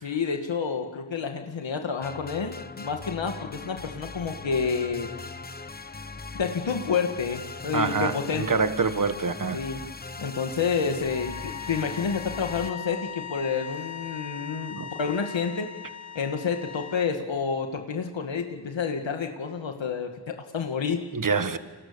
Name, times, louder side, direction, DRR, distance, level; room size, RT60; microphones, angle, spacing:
voice 1, 0.0-5.1 6.3-8.6 9.5-9.8 10.2-15.7 16.2-21.0, left 6 dB, 80° left, 2.1 m, -29 dB
sound 1, 2.0-12.7, left 4 dB, 20° left, 1.0 m, -40 dB
voice 2, 7.7-9.6 14.8-14.9 21.1-21.6, right 5 dB, 45° right, 1.6 m, -26 dB
sound 2, 11.1-17.2, left 8 dB, 40° left, 1.3 m, -39 dB
29.5 x 28.5 x 7.0 m
wide cardioid pair, 130°, 44 cm